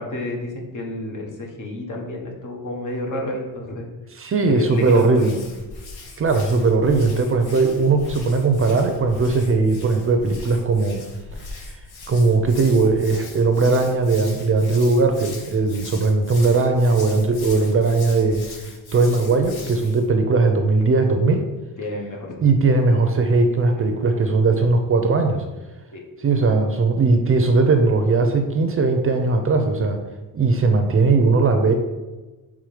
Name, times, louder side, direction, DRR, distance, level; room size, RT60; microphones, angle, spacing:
voice 1, 0.0-3.9 4.4-5.4 21.8-22.3 25.9-26.0, left 1 dB, 55° left, 0 dB, 1.3 m, -30 dB
voice 2, 4.1-5.4 6.2-11.0 11.7-11.8 12.1-18.4 18.9-21.4 22.4-25.4 26.2-30.0 30.3-31.7, right 3 dB, 35° right, 6 dB, 0.6 m, -19 dB
Hands, 4.6-20.1, left 3 dB, 80° left, 1.2 m, -40 dB
6.1 x 3.7 x 5.0 m, 1.2 s
wide cardioid pair, 155°, 37 cm